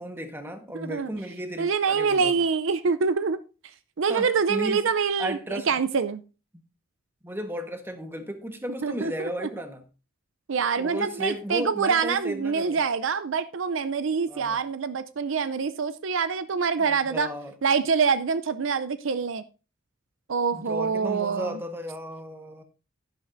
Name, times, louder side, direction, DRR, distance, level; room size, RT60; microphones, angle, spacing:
voice 1, 0.0-2.3 4.1-4.8 5.2-5.7 7.2-9.8 10.8-12.8 14.3-14.6 16.8-17.5 20.5-22.6, equal, 10° right, 1.3 m, -34 dB
voice 2, 0.7-1.1 1.6-3.4 4.0-6.2 8.8-9.5 10.5-17.3 17.6-19.4 20.3-21.6, right 5 dB, 65° right, 0.5 m, -25 dB
11.5 x 11.0 x 2.6 m
head